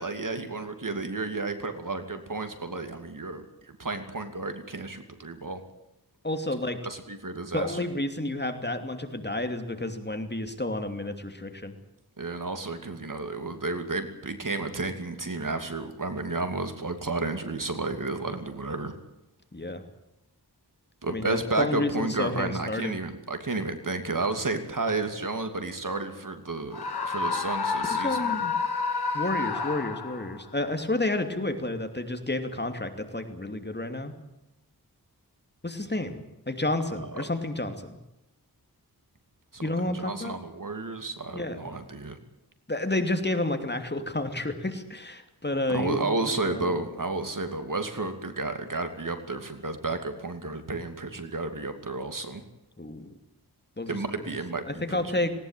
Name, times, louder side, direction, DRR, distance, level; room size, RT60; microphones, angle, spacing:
voice 1, 0.0-3.4 3.8-5.6 6.8-7.8 12.2-18.9 21.0-28.3 37.0-37.3 39.5-42.2 45.7-52.4 53.9-55.1, right 3 dB, 55° right, 7 dB, 2.7 m, -32 dB
voice 2, 6.2-6.8 7.5-11.7 19.5-19.8 21.1-23.0 27.8-28.5 29.1-34.1 35.6-38.0 39.6-40.3 41.3-41.7 42.7-46.7 52.8-53.0 53.8-54.0 54.7-55.3, left 2 dB, 25° left, 7 dB, 2.8 m, -30 dB
Screaming, 26.7-30.4, left 4 dB, 75° left, 1.4 m, -29 dB
19.0 x 19.0 x 9.1 m, 0.91 s
wide cardioid pair, 75°, 39 cm